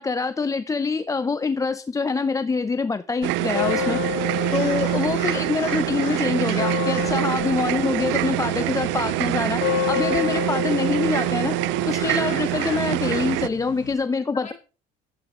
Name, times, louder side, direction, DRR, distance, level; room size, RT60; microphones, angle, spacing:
voice 1, 0.0-4.0 4.5-11.6 11.8-14.5, left 4 dB, 15° left, 12 dB, 0.6 m, -25 dB
sound 1, 3.2-13.5, right 20 dB, 75° right, 0.5 m, -25 dB
sound 2, 3.5-13.9, left 16 dB, 75° left, 1.3 m, -31 dB
voice 2, 4.0-4.7 7.6-7.9 14.2-14.5, left 4 dB, 40° left, 4 dB, 5.9 m, -44 dB
12.0 x 8.3 x 4.9 m, 0.35 s
cardioid pair, 105°, 19 cm